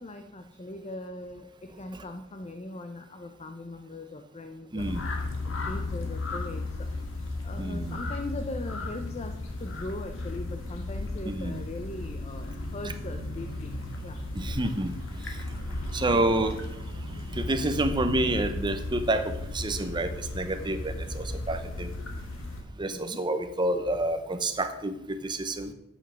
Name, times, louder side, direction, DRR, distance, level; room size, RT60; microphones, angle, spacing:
voice 1, 0.0-4.9 5.4-6.9 7.4-13.8 14.0-14.2 15.7-16.6 22.9-23.3, left 2 dB, 30° left, 6 dB, 0.6 m, -40 dB
voice 2, 4.7-5.0 7.6-8.0 11.2-11.6 14.3-14.9 15.2-15.4 15.9-16.6 17.1-22.0 22.8-25.7, right 1 dB, 25° right, 8 dB, 0.8 m, -29 dB
sound 1, 4.8-22.6, left 2 dB, 70° left, 1.6 m, -35 dB
8.5 x 6.4 x 6.2 m, 0.81 s
head